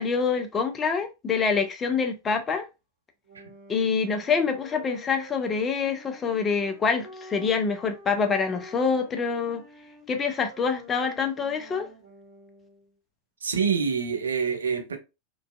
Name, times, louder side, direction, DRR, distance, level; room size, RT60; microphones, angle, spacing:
voice 1, 0.0-2.7 3.7-9.6 10.1-11.9, left 5 dB, 20° left, 0.4 m, -26 dB
sound 1, 3.2-12.9, equal, 50° right, 1.2 m, -48 dB
voice 2, 13.4-15.0, right 6 dB, 70° right, 0.4 m, -26 dB
2.5 x 2.3 x 2.2 m
figure-of-eight pair, 90°, 0 cm